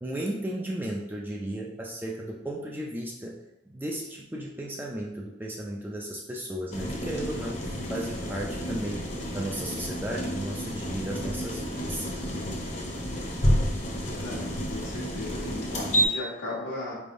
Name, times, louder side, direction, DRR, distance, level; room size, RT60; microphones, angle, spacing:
voice 1, 0.0-3.4 3.7-12.4, right 1 dB, 10° right, -1 dB, 0.3 m, -35 dB
sound 1, 6.7-16.1, equal, 35° left, 0.7 m, -30 dB
voice 2, 14.1-17.0, left 2 dB, 90° left, -10 dB, 1.2 m, -37 dB
4.4 x 3.4 x 2.5 m, 0.93 s
head